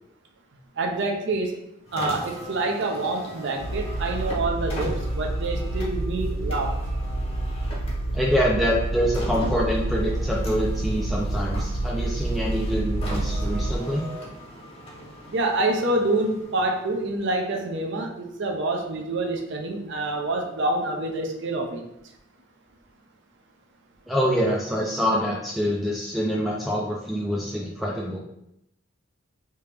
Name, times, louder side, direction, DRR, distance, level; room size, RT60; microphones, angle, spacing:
voice 1, 0.8-1.5 1.9-6.8 15.3-21.9, right 2 dB, 65° right, 2 dB, 0.6 m, -27 dB
Car, 1.8-17.3, equal, 30° left, 0.8 m, -40 dB
sound 1, 3.6-13.8, right 1 dB, 60° left, 0.4 m, -28 dB
voice 2, 8.1-14.0 24.1-28.2, equal, ahead, -3 dB, 0.3 m, -25 dB
3.3 x 2.8 x 3.3 m, 0.81 s
head